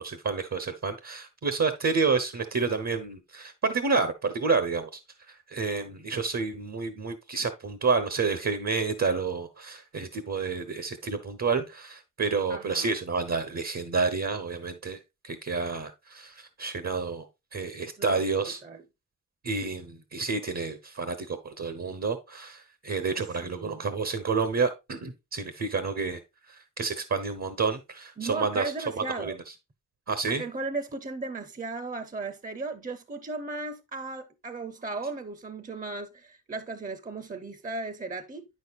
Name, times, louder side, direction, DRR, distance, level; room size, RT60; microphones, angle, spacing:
voice 1, 0.0-5.0 5.3-15.0 15.2-17.3 17.5-18.6 19.4-26.2 26.5-28.7 29.2-29.4 30.1-30.4, right 4 dB, 60° right, 0.9 m, -29 dB
voice 2, 12.5-13.0 18.0-18.2 18.6-18.8 23.4-23.9 28.2-29.4 30.3-38.5, right 3 dB, 25° right, 0.6 m, -36 dB
9.2 x 6.4 x 2.4 m
wide cardioid pair, 95°, 30 cm